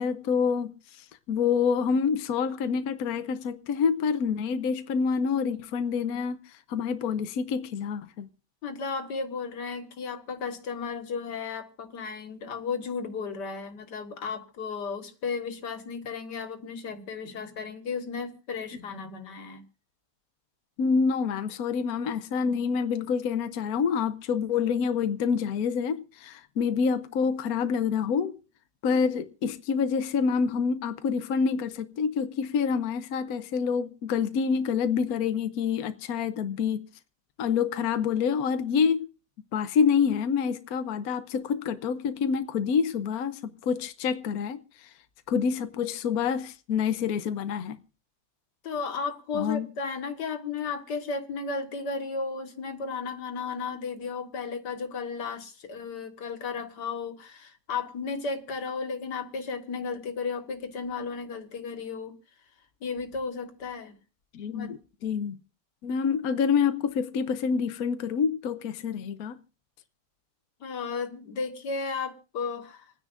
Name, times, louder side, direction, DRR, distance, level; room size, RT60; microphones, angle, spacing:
voice 1, 0.0-8.3 20.8-28.4 28.8-36.9 37.4-39.1 39.5-44.9 45.3-47.8 49.3-49.7 64.3-65.4 65.8-69.4, left 6 dB, 65° left, 1.2 m, -27 dB
voice 2, 8.6-19.6 48.6-62.2 62.8-64.0 64.5-64.8 70.6-72.9, left 5 dB, 85° left, 2.1 m, -34 dB
27.5 x 9.8 x 2.4 m
omnidirectional pair, 1.8 m